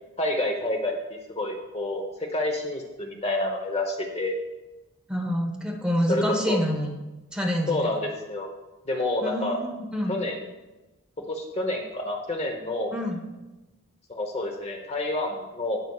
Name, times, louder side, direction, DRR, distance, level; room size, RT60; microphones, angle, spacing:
voice 1, 0.2-4.3 6.1-6.6 7.7-8.5 8.9-9.6 10.1-10.4 11.3-12.9 14.1-15.8, left 1 dB, 30° left, 2 dB, 1.0 m, -28 dB
voice 2, 5.1-6.9 7.3-7.9 9.2-10.2 12.9-13.2, equal, 5° right, -1 dB, 1.1 m, -27 dB
17.5 x 6.0 x 2.4 m, 1.1 s
head